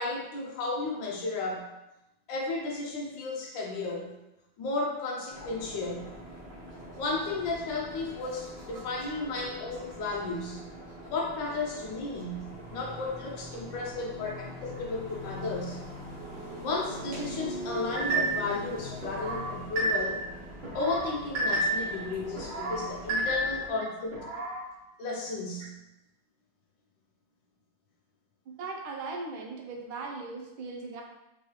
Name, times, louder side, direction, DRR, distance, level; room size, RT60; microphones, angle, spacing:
voice 1, 0.0-1.7 2.3-4.2 4.6-6.1 7.0-10.7 11.1-15.8 16.6-20.2 20.7-24.3 25.0-25.7, left 3 dB, 70° left, -1 dB, 1.2 m, -33 dB
sound 1, 5.3-23.7, equal, 35° right, 1.0 m, -43 dB
sound 2, 18.0-18.5 19.0-20.3 20.6-22.0 22.4-23.7 24.1-24.6, right 2 dB, 60° right, 2.2 m, -30 dB
voice 2, 28.6-31.0, right 3 dB, 75° right, 1 dB, 1.4 m, -38 dB
4.5 x 3.1 x 2.9 m, 0.92 s
omnidirectional pair, 2.3 m